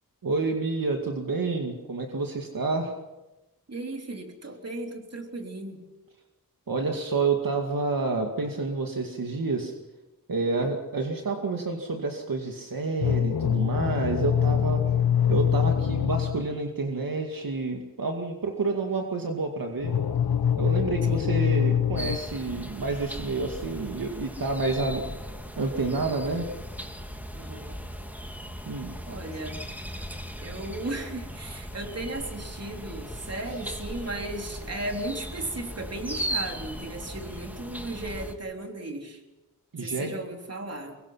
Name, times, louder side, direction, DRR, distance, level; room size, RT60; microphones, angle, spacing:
voice 1, 0.2-2.9 6.7-9.7 10.3-14.9 15.3-19.9 20.6-25.0 25.6-26.5 28.7-29.0 39.7-40.2, right 3 dB, 70° right, 2 dB, 2.2 m, -29 dB
voice 2, 3.7-5.9 10.6-10.7 21.0-21.3 27.3-27.8 29.1-29.6 30.4-39.2 39.7-41.0, right 2 dB, 45° right, 2 dB, 3.6 m, -36 dB
sound 1, 13.0-16.5 19.8-22.2, left 8 dB, 85° left, 1.1 m, -24 dB
sound 2, 21.9-38.3, equal, 5° right, 2.5 m, -38 dB
24.5 x 22.5 x 5.8 m, 1.0 s
wide cardioid pair, 95°, 36 cm